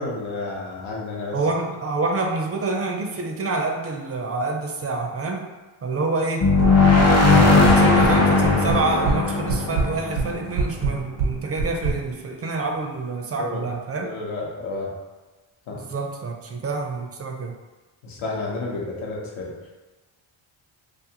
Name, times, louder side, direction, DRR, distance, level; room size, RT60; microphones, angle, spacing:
voice 1, 0.0-1.4 13.4-13.7 14.0-15.0 15.7-15.8 18.0-19.6, left 2 dB, 80° left, -3 dB, 0.9 m, -31 dB
voice 2, 1.3-5.5 5.8-6.5 7.2-14.1 15.8-17.5, right 3 dB, 30° right, 2 dB, 0.4 m, -27 dB
sound 1, 6.4-11.0, left 3 dB, 35° left, 0.5 m, -17 dB
sound 2, 6.6-7.1 7.4-8.1 8.4-9.2 9.5-12.0, right 4 dB, 85° right, 0.6 m, -24 dB
2.5 x 2.4 x 2.8 m, 1.2 s
cardioid pair, 65°, 48 cm